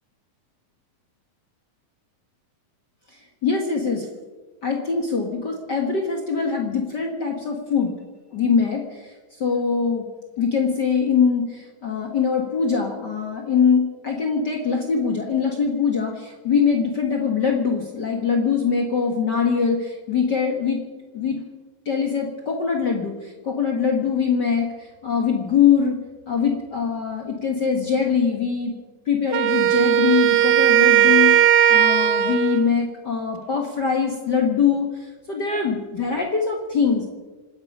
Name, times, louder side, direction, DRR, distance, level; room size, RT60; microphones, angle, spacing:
voice 1, 3.1-4.1 4.6-7.9 8.3-10.1 10.4-20.8 21.1-21.4 21.8-26.0 26.3-28.7 29.0-37.1, left 6 dB, 50° left, 1 dB, 1.3 m, -23 dB
Wind instrument woodwind instrument, 29.3-32.7, right 11 dB, 90° right, 2.6 m, -17 dB
26.5 x 10.0 x 5.4 m, 1.3 s
omnidirectional pair, 4.0 m